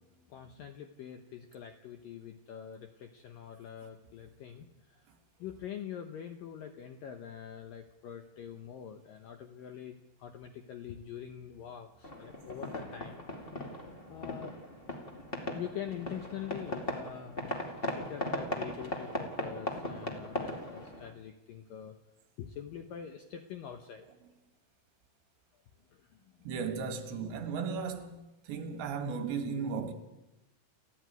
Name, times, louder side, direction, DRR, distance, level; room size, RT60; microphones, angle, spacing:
voice 1, 0.0-5.1 5.4-13.2 14.1-14.5 15.5-22.0 22.4-24.1 25.9-26.5, left 9 dB, 75° left, 2.1 m, -44 dB
sound 1, 12.0-21.1, left 1 dB, 30° left, 1.0 m, -38 dB
voice 2, 26.5-28.2 28.5-29.9, right 5 dB, 70° right, 4.1 m, -35 dB
30.0 x 11.0 x 9.4 m
omnidirectional pair, 5.4 m